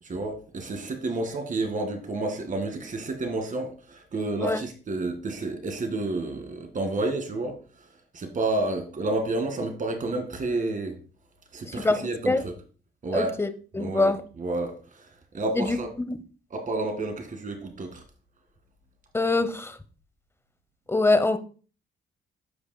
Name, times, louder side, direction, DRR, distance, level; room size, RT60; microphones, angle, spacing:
voice 1, 0.0-7.6 8.1-11.0 11.5-12.5 13.0-13.4 13.8-15.9 16.5-18.0, right 2 dB, 40° right, 2.0 m, -30 dB
voice 2, 11.6-12.4 13.1-13.5 13.7-14.2 15.6-15.8 16.1-16.2 19.1-19.7 20.9-21.4, left 2 dB, 10° left, 0.8 m, -24 dB
14.0 x 4.9 x 2.2 m
cardioid pair, 90°, 20 cm